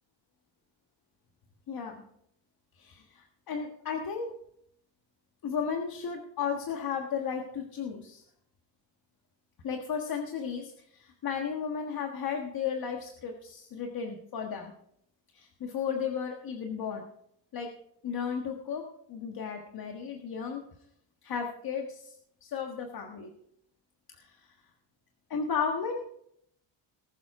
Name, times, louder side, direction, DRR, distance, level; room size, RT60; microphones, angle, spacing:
voice 1, 2.8-4.3 5.4-8.2 9.6-14.7 15.3-17.0 17.5-17.7 18.0-18.8 19.1-20.6 21.2-22.1 22.4-23.3 24.2-24.5 25.3-26.1, left 6 dB, 50° left, 3 dB, 1.6 m, -34 dB
19.5 x 7.4 x 4.8 m, 0.73 s
cardioid pair, 150°, 46 cm